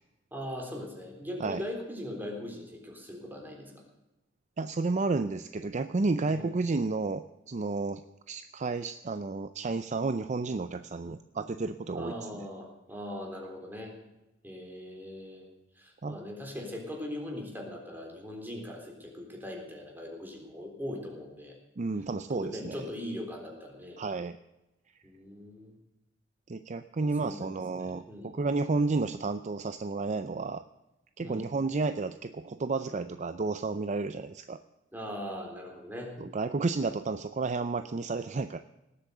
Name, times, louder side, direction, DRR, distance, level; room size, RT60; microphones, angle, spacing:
voice 1, 0.3-3.8 6.3-6.5 11.9-14.0 14.4-15.5 15.8-21.6 22.3-24.0 25.0-25.8 27.0-28.3 31.2-31.4 34.9-36.1, left 1 dB, 10° right, 1 dB, 3.6 m, -40 dB
voice 2, 4.6-8.0 8.3-12.1 16.0-16.2 21.8-22.8 24.0-24.4 26.5-30.6 31.2-34.6 36.2-38.6, right 3 dB, 35° right, 11 dB, 0.5 m, -31 dB
18.5 x 8.4 x 6.7 m, 0.96 s
head